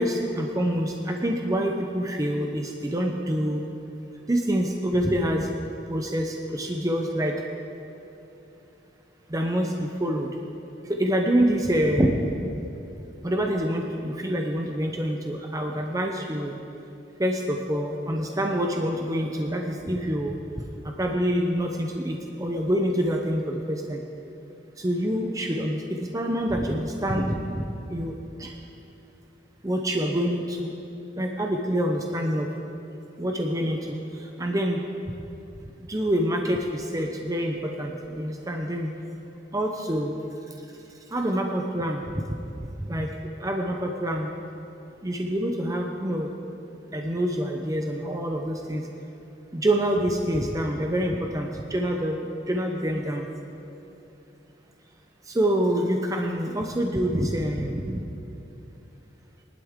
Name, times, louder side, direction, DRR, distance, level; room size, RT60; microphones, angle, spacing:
voice 1, 0.0-3.6 4.3-5.5 5.9-7.3 9.3-10.3 10.9-12.2 13.2-16.5 17.2-20.4 21.0-24.0 24.8-27.6 27.9-28.1 28.4-28.5 29.6-30.7 31.2-32.5 33.2-34.9 35.9-38.9 39.5-40.2 41.1-42.0 42.8-43.1 43.4-44.3 45.0-46.3 46.9-48.8 49.5-52.2 52.5-53.3 55.3-58.0, equal, 20° right, 2 dB, 0.7 m, -26 dB
20.0 x 11.5 x 3.7 m, 2.9 s
head